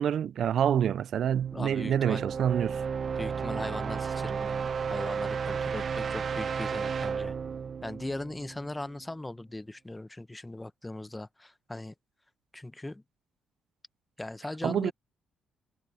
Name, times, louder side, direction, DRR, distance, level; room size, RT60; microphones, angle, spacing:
voice 1, 0.0-2.8 14.6-14.9, right 9 dB, 65° right, 0.4 m, -27 dB
sound 1, 1.2-9.0, right 6 dB, 45° right, 0.8 m, -33 dB
voice 2, 1.5-2.2 3.2-7.3 7.8-11.9 12.5-13.0 14.2-14.9, left 1 dB, 10° left, 1.1 m, -39 dB
cardioid pair, 90°, 0 cm